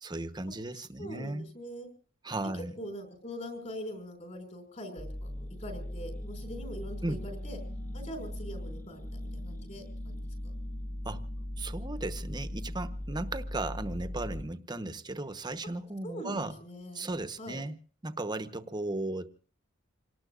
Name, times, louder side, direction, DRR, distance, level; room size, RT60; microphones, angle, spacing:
voice 1, 0.0-1.5 2.2-2.7 7.0-7.2 11.0-11.2 11.6-16.6 16.9-17.8 18.0-19.3, right 2 dB, 20° right, 1.0 m, -36 dB
voice 2, 0.7-1.9 2.8-7.6 7.9-10.5 16.0-17.1 17.4-17.6, equal, 40° left, 5.6 m, -43 dB
sound 1, 5.0-14.4, left 1 dB, 10° left, 1.4 m, -39 dB
27.5 x 19.0 x 2.5 m
head